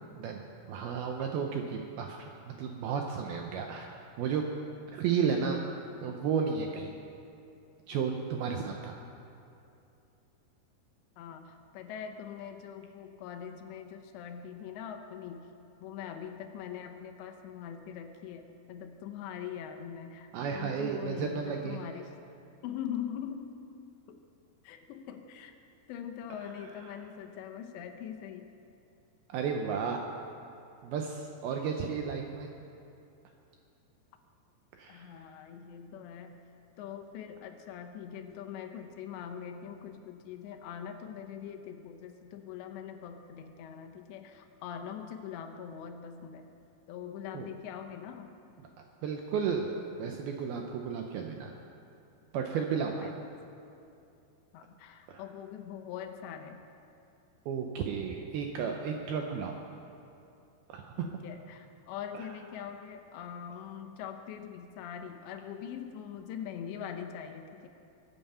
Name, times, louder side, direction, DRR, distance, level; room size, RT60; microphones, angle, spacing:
voice 1, 0.2-4.4 4.9-5.6 6.0-7.0 7.9-9.0 20.3-21.8 29.3-30.0 30.8-32.5 34.8-35.1 47.3-47.5 49.0-49.7 50.0-51.5 52.3-53.1 55.1-55.2 57.5-59.6 60.7-61.1 62.1-62.3, right 6 dB, 80° right, 2 dB, 2.3 m, -33 dB
voice 2, 11.2-15.5 15.8-22.1 22.6-23.5 24.1-24.2 24.6-25.6 25.9-28.5 34.9-36.4 36.8-46.5 46.9-48.3 53.0-53.2 54.5-56.6 61.0-67.7, left 8 dB, 80° left, 5 dB, 3.0 m, -42 dB
22.5 x 9.1 x 5.6 m, 2.7 s
omnidirectional pair, 5.2 m